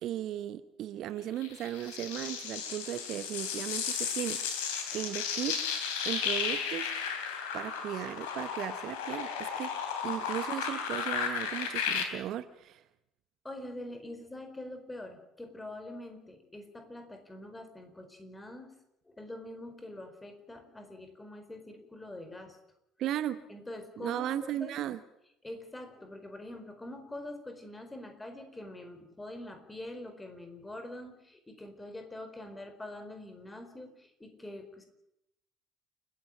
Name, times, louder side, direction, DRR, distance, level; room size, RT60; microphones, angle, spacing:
voice 1, 0.0-4.4 4.9-5.6 6.0-6.9 7.5-9.7 10.0-12.8 23.0-23.4 24.0-25.0, right 12 dB, 50° right, 14 dB, 0.9 m, -36 dB
sound 1, 1.4-12.0, left 7 dB, 65° left, 3.3 m, -34 dB
voice 2, 13.4-18.7 19.1-22.6 23.5-24.8 25.4-34.9, left 1 dB, 15° left, 7 dB, 4.6 m, -44 dB
29.5 x 11.0 x 9.1 m, 0.84 s
figure-of-eight pair, 60°, 0 cm